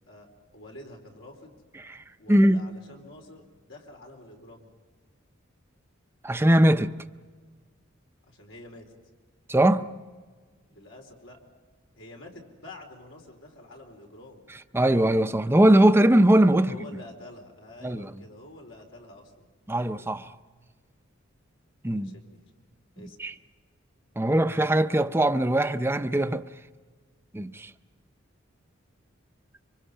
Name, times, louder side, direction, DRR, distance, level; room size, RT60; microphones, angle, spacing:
voice 1, 0.5-1.6 2.2-4.7 8.3-8.8 10.7-11.4 12.0-14.4 16.6-19.5 21.9-22.4 23.0-23.2, left 1 dB, 80° left, 4.2 m, -47 dB
voice 2, 1.8-2.6 6.2-6.9 9.5-9.9 14.7-16.8 17.8-18.2 19.7-20.3 21.8-22.1 23.2-23.3 24.2-26.4 27.3-27.7, right 1 dB, 10° right, 0.6 m, -21 dB
26.0 x 24.5 x 5.6 m
head